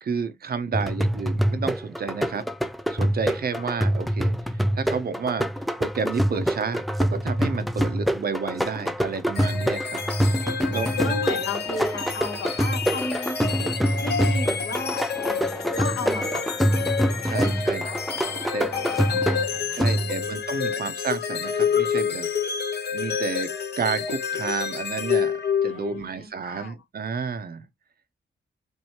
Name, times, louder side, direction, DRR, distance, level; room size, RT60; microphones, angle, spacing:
voice 1, 0.0-2.4 2.9-5.5 5.8-10.0 10.7-11.1 17.2-17.9 18.5-18.7 19.7-22.3 22.9-23.5 23.8-25.3 25.6-27.7, right 5 dB, 50° right, 0.8 m, -30 dB
sound 1, 0.7-20.4, equal, ahead, 0.4 m, -26 dB
sound 2, 9.4-26.0, left 7 dB, 55° left, 1.1 m, -29 dB
voice 2, 11.0-13.7 14.0-17.0 17.3-18.0 18.4-20.2 25.6-26.7, left 2 dB, 75° left, 2.5 m, -36 dB
4.4 x 2.7 x 2.9 m
wide cardioid pair, 110°, 21 cm